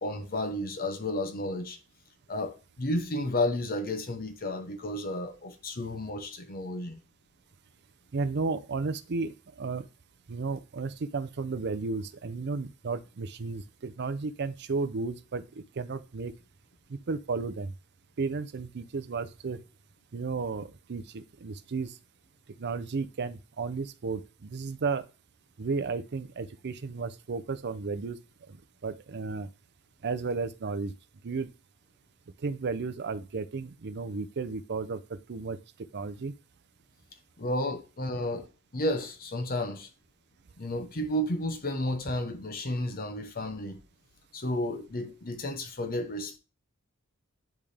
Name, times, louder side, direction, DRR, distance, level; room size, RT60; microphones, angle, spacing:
voice 1, 0.0-1.8 2.3-7.0 37.4-39.9 40.6-43.8 44.3-46.4, left 1 dB, 45° left, 1.0 m, -32 dB
voice 2, 8.1-9.9 10.3-16.3 16.9-17.7 18.2-19.6 20.1-22.0 22.6-25.1 25.6-29.5 30.0-30.9 31.2-31.5 32.4-36.3, right 4 dB, 55° right, 0.5 m, -33 dB
10.5 x 3.6 x 3.3 m
head